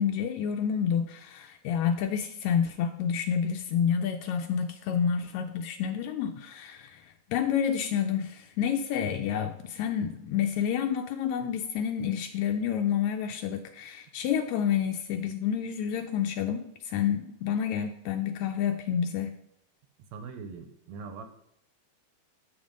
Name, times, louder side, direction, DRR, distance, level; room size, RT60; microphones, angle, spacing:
voice 1, 0.0-19.3, left 8 dB, 80° left, 6 dB, 1.8 m, -29 dB
voice 2, 20.1-21.2, right 5 dB, 80° right, 6 dB, 2.0 m, -41 dB
7.9 x 5.2 x 5.2 m, 0.79 s
omnidirectional pair, 3.3 m